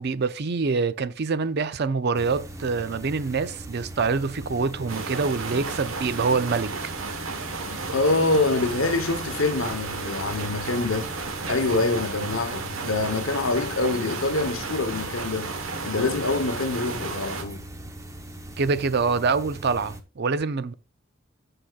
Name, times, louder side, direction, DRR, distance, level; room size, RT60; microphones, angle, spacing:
voice 1, 0.0-6.7 18.6-20.7, right 4 dB, 50° right, 0.5 m, -25 dB
sound 1, 2.1-20.0, right 1 dB, 15° right, 0.8 m, -40 dB
sound 2, 4.9-17.4, right 4 dB, 80° right, 1.3 m, -33 dB
voice 2, 7.9-11.1 11.5-15.5 15.8-17.6, left 3 dB, 75° left, 1.0 m, -25 dB
14.5 x 4.9 x 2.4 m
head